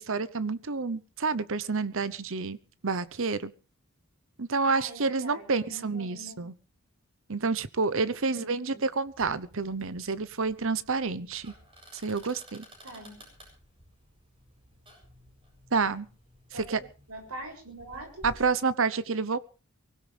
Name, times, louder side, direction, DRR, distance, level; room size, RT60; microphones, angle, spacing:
voice 1, 0.0-2.6 2.8-3.5 4.4-6.5 7.3-11.5 11.9-12.6 15.7-16.1 16.5-16.8 18.2-19.4, right 4 dB, 60° right, 16 dB, 0.9 m, -29 dB
voice 2, 4.7-6.4 8.3-8.8 12.8-13.2 16.5-16.8 17.1-18.2, right 1 dB, 80° right, 3 dB, 6.8 m, -44 dB
sound 1, 9.1-18.5, equal, 25° right, 7.8 m, -54 dB
23.5 x 16.5 x 3.4 m, 0.36 s
head